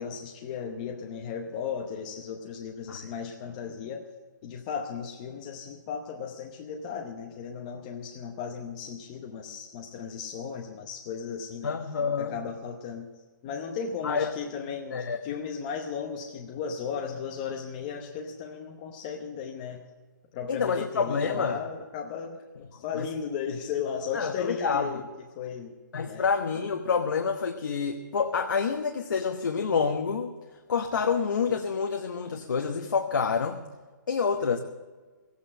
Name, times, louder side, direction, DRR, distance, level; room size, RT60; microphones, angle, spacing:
voice 1, 0.0-4.0 4.4-11.7 12.2-13.1 13.4-19.8 20.3-22.4 22.7-25.1 25.3-25.7 26.1-26.2, left 6 dB, 20° left, 2 dB, 0.8 m, -35 dB
voice 2, 11.6-12.4 14.0-14.3 14.9-15.2 20.5-21.6 22.9-23.1 24.1-24.9 25.9-30.3 30.7-33.6 34.1-34.6, left 5 dB, 70° left, 4 dB, 1.1 m, -27 dB
16.5 x 8.6 x 7.5 m, 1.3 s
hypercardioid pair, 170°, 11 cm